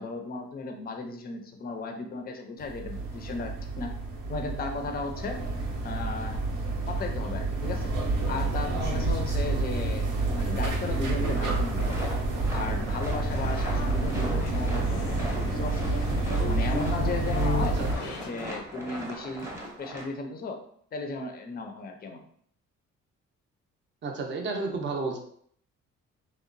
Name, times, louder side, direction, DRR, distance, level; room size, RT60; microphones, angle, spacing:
voice 1, 0.0-3.9 4.3-5.4 5.8-6.5 6.9-7.9 8.3-12.1 12.5-15.9 16.5-17.8 18.2-20.6 20.9-22.2, left 3 dB, 30° left, 5 dB, 0.4 m, -35 dB
sound 1, 2.6-17.9, right 3 dB, 90° right, 0.7 m, -29 dB
sound 2, 11.2-20.0, right 1 dB, 10° right, 0.8 m, -39 dB
Male speech man speaking, 13.3-18.3, left 4 dB, 80° left, 0.6 m, -36 dB
voice 2, 17.6-18.1 24.0-25.2, right 3 dB, 40° right, 2 dB, 0.5 m, -32 dB
2.8 x 2.1 x 2.5 m, 0.63 s
cardioid pair, 90°, 30 cm